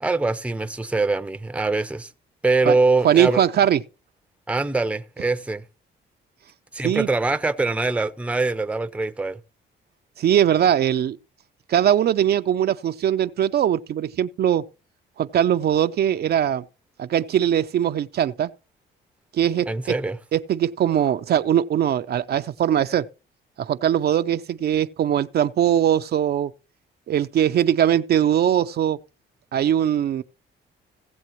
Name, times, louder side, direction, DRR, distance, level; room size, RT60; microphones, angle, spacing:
voice 1, 0.0-2.1 2.4-3.4 4.5-5.6 6.7-9.4 19.7-20.2, right 3 dB, 5° right, 0.6 m, -23 dB
voice 2, 3.0-3.8 6.8-7.1 10.2-11.2 11.7-14.6 15.2-16.6 17.0-18.5 19.3-19.7 20.3-23.1 23.6-26.5 27.1-29.0 29.5-30.2, right 10 dB, 55° right, 0.4 m, -21 dB
16.5 x 7.5 x 3.0 m
cardioid pair, 90°, 20 cm